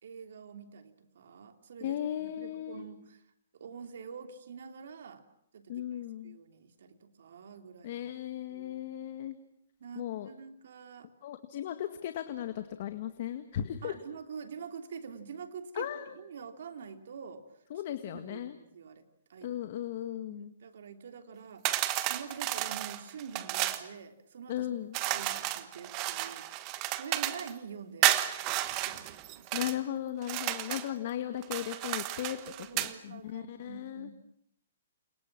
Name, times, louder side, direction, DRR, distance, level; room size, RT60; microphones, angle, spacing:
voice 1, 0.0-3.2 3.5-5.2 5.5-5.9 6.2-8.0 8.5-8.9 9.8-11.1 13.8-17.4 18.1-19.6 20.3-26.5 26.9-28.2 28.8-29.5 32.6-34.1, right 6 dB, 65° right, 8 dB, 3.2 m, -46 dB
voice 2, 1.8-2.8 5.7-6.4 7.8-9.4 10.0-10.3 11.2-14.0 15.7-16.1 17.7-18.6 19.4-20.5 24.5-25.0 29.5-32.4 32.7-34.1, left 11 dB, 45° left, 9 dB, 1.8 m, -36 dB
sound 1, 21.6-23.9 24.9-27.5 28.0-29.8 30.2-30.9 31.4-32.9, right 15 dB, 25° right, 1.4 m, -32 dB
29.5 x 28.0 x 6.1 m, 0.73 s
hypercardioid pair, 165°, 0 cm